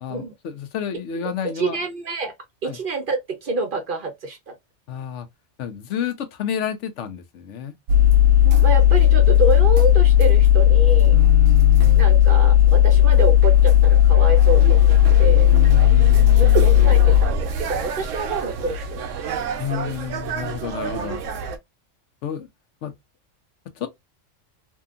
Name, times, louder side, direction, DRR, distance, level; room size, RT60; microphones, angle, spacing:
voice 1, 0.0-1.8 2.6-2.8 4.9-5.3 5.6-7.7 11.1-12.1 15.5-17.0 19.6-21.2 22.2-22.5 22.8-22.9 23.8-23.9, left 8 dB, 75° left, 0.9 m, -30 dB
voice 2, 1.4-2.3 2.6-4.5 8.6-11.2 12.0-15.5 16.4-19.1 19.7-19.9, right 3 dB, 50° right, 0.7 m, -27 dB
sound 1, 7.9-21.6, left 10 dB, 85° right, 0.9 m, -16 dB
2.7 x 2.4 x 2.3 m
omnidirectional pair, 1.3 m